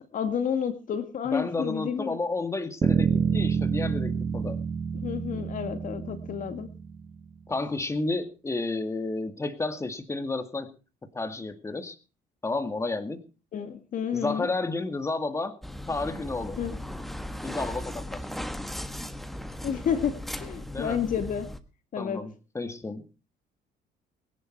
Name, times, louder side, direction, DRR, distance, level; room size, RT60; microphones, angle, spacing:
voice 1, 0.1-2.2 4.9-6.7 13.5-14.5 16.6-16.8 19.6-21.5 21.9-22.2, left 7 dB, 50° left, 9 dB, 2.0 m, -30 dB
voice 2, 1.2-4.6 7.5-10.7 11.1-12.0 12.4-13.2 14.1-15.5 15.9-16.6 17.4-18.2 20.7-21.0 22.0-23.1, left 3 dB, 15° left, 8 dB, 2.3 m, -31 dB
sound 1, 2.8-7.2, right 6 dB, 30° right, 1.3 m, -28 dB
sound 2, 15.6-21.6, left 1 dB, ahead, 1.4 m, -37 dB
22.0 x 11.0 x 4.6 m, 0.35 s
cardioid pair, 110°, 17 cm